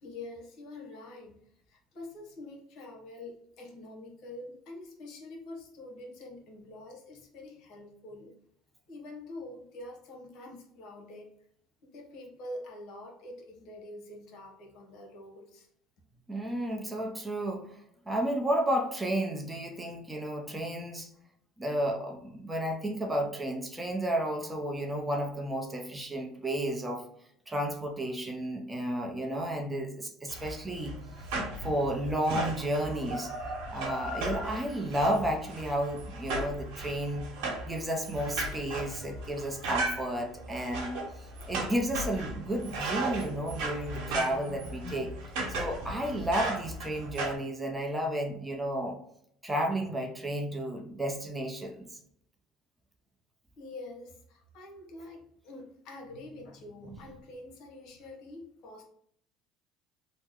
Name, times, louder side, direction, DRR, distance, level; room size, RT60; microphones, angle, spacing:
voice 1, 0.0-1.4 1.7-8.3 8.9-11.3 11.8-15.7 53.6-58.8, left 2 dB, 65° left, 1 dB, 1.0 m, -46 dB
voice 2, 16.3-17.8 18.1-21.1 21.6-27.0 27.5-31.0 31.6-33.3 33.7-37.3 37.6-41.0 41.5-49.0 49.4-51.9 56.8-57.0, right 1 dB, 15° right, 2 dB, 0.6 m, -32 dB
sound 1, 30.3-47.4, right 2 dB, 75° right, 1.1 m, -36 dB
2.9 x 2.1 x 3.6 m, 0.70 s
supercardioid pair, 100°, 0 cm